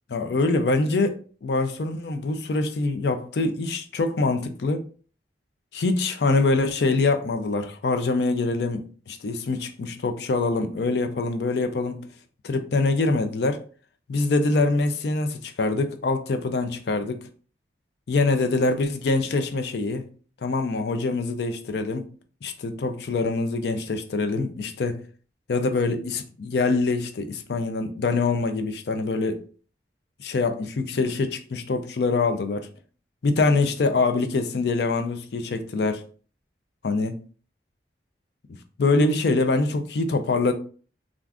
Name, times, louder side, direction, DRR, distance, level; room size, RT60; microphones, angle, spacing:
voice 1, 0.1-4.9 5.7-12.0 12.4-13.6 14.1-17.1 18.1-20.1 20.4-22.1 22.4-25.0 25.5-29.4 30.2-32.7 33.2-36.0 36.8-37.2 38.8-40.5, left 3 dB, 65° left, 0.4 m, -24 dB
2.5 x 2.4 x 3.4 m
head